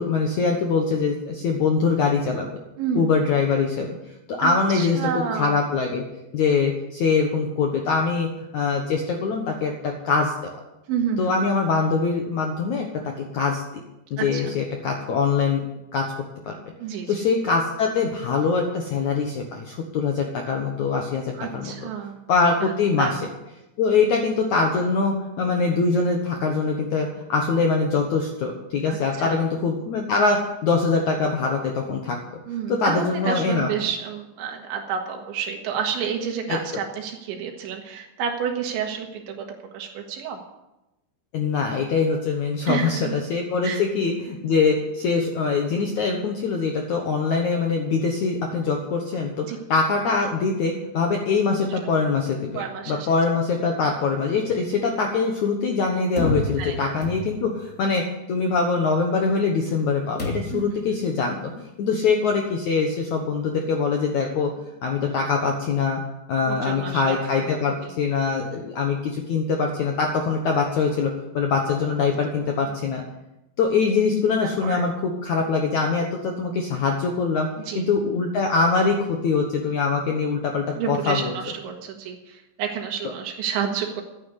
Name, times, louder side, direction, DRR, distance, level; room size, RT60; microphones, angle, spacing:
voice 1, 0.0-2.5 2.9-3.9 4.3-6.0 6.3-10.5 11.2-12.9 13.2-13.6 14.1-15.6 15.9-16.1 16.4-16.5 17.1-21.7 22.3-23.1 23.8-32.2 32.7-33.7 36.5-36.6 41.3-58.0 58.3-61.4 61.8-64.5 64.8-66.0 66.3-73.0 73.6-77.5 77.8-81.3, left 4 dB, 75° left, 2 dB, 1.7 m, -23 dB
voice 2, 2.8-3.1 4.4-5.6 10.9-11.3 14.2-14.6 16.8-17.2 21.4-22.2 22.6-22.7 23.0-23.3 28.9-29.5 32.5-39.5 39.7-40.4 42.7-43.2 43.6-43.8 49.5-49.6 51.8-51.9 52.5-53.1 56.6-56.9 60.5-60.9 66.5-67.5 67.8-67.9 72.5-72.6 74.3-74.9 77.7-77.9 80.8-84.0, right 7 dB, 85° right, 2 dB, 3.7 m, -30 dB
sound 1, 56.2-57.6 60.2-60.8, left 1 dB, 35° left, 1.2 m, -29 dB
12.5 x 9.8 x 8.2 m, 0.94 s
omnidirectional pair, 5.2 m